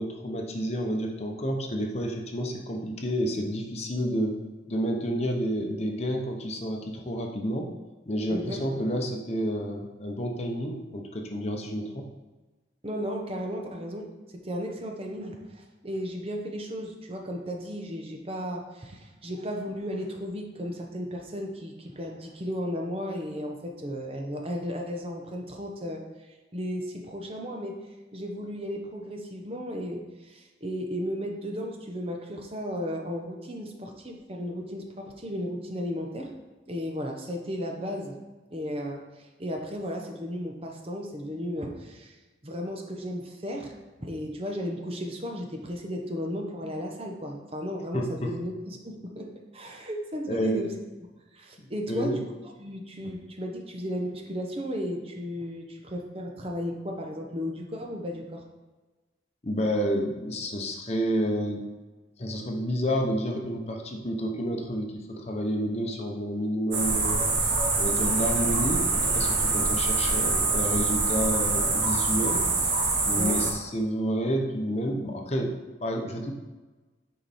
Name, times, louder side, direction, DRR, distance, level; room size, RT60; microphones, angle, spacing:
voice 1, 0.0-4.4 4.7-7.7 8.1-12.1 47.9-48.3 50.3-50.7 51.6-52.2 59.4-61.6 62.2-72.7 73.0-76.3, equal, 35° left, 2 dB, 0.9 m, -30 dB
voice 2, 8.3-8.8 12.8-26.0 26.3-36.3 36.7-38.2 38.5-42.2 42.4-43.7 44.0-50.7 51.3-52.2 52.6-58.4 73.1-73.4, equal, 30° right, 2 dB, 1.0 m, -35 dB
sound 1, 66.7-73.5, right 3 dB, 90° right, 1.9 m, -25 dB
9.7 x 4.7 x 4.2 m, 1.2 s
head